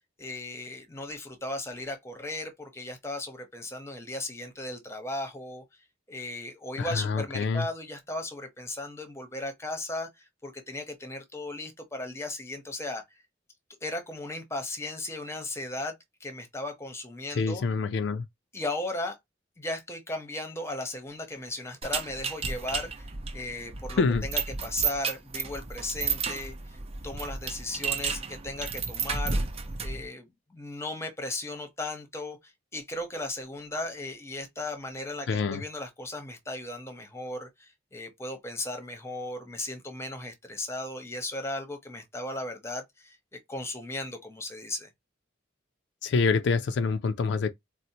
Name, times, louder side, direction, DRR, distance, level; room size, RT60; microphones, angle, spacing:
voice 1, 0.2-5.8 6.1-13.0 13.8-17.6 18.5-19.2 19.6-29.4 29.8-43.2 43.5-44.9, left 2 dB, 15° left, 0.8 m, -36 dB
voice 2, 6.8-7.7 17.4-18.2 24.0-24.3 35.3-35.6 46.0-47.5, left 4 dB, 65° left, 0.3 m, -26 dB
sound 1, 21.8-30.1, right 5 dB, 30° right, 0.6 m, -32 dB
4.1 x 2.0 x 2.7 m
head